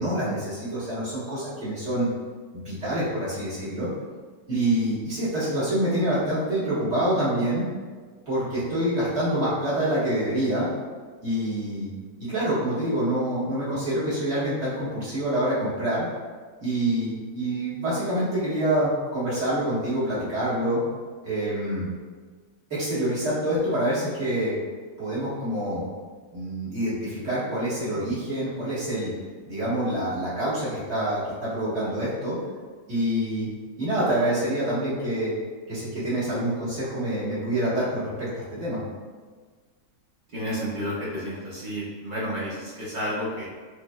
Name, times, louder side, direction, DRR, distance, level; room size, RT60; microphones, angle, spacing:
voice 1, 0.0-2.1 2.5-3.9 4.5-7.7 8.3-10.7 11.2-11.9 12.2-16.1 16.6-20.8 21.2-21.9 22.7-24.5 25.0-25.9 26.3-29.1 29.5-32.4 32.9-33.5 33.8-35.3 35.7-38.8, right 1 dB, 35° right, -11 dB, 1.7 m, -26 dB
voice 2, 40.3-43.5, equal, 55° right, -8 dB, 0.5 m, -31 dB
5.8 x 2.5 x 2.3 m, 1.5 s
omnidirectional pair, 2.1 m